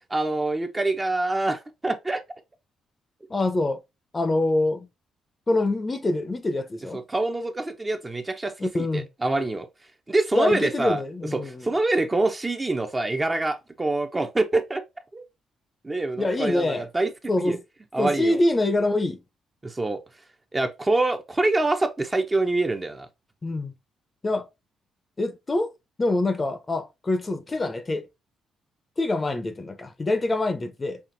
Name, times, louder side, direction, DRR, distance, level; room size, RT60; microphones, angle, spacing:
voice 1, 0.1-2.2 6.9-9.7 10.1-11.0 11.3-14.8 15.1-15.2 15.8-17.1 17.4-17.6 17.9-18.4 19.6-20.0 20.5-23.1, right 2 dB, 20° right, 0.7 m, -25 dB
voice 2, 3.3-3.8 4.1-4.9 5.5-7.0 8.6-9.1 10.3-11.7 16.2-16.8 17.3-17.6 18.0-19.2 23.4-23.7 24.2-24.5 25.2-25.7 26.0-28.0 29.0-31.0, left 2 dB, 25° left, 0.6 m, -25 dB
5.7 x 2.5 x 2.6 m
cardioid pair, 90°, 0 cm